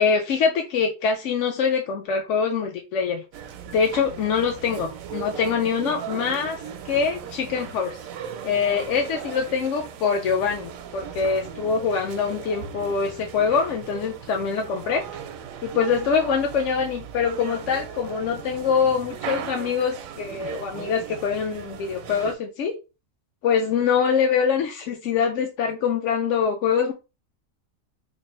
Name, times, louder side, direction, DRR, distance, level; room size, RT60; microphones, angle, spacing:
voice 1, 0.0-3.2 3.7-8.0 8.4-15.0 15.6-22.7 23.4-26.9, left 6 dB, 70° left, 3 dB, 0.9 m, -24 dB
sound 1, 3.3-22.4, right 8 dB, 80° right, 1.0 m, -38 dB
3.3 x 2.5 x 4.2 m, 0.29 s
omnidirectional pair, 1.4 m